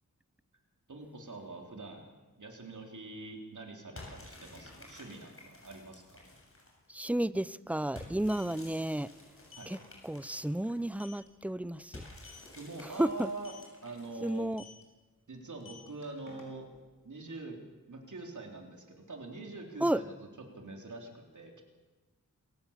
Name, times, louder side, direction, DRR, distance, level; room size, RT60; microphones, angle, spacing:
voice 1, 0.9-2.1 2.4-6.3 9.6-9.7 12.5-13.5 13.8-14.6 15.3-16.7 17.0-17.6 17.9-21.6, right 3 dB, 65° right, 2 dB, 3.9 m, -44 dB
sound 1, 4.0-6.9 8.0-10.9 11.9-14.6, left 2 dB, 40° left, 7.6 m, -52 dB
sound 2, 6.5-6.6 6.8-7.0 8.0-8.5 9.5-9.7 10.1-10.3 10.7-10.8 11.0-11.3 12.1-12.5 13.4-13.7 14.5-14.8 15.5-16.8, left 5 dB, 85° left, 5.4 m, -52 dB
voice 2, 6.9-9.1 9.7-9.8 10.0-12.0 13.0-13.3 14.2-14.6 19.8-20.0, right 1 dB, 5° right, 18 dB, 0.6 m, -32 dB
27.0 x 16.0 x 7.4 m, 1.3 s
wide cardioid pair, 75°, 32 cm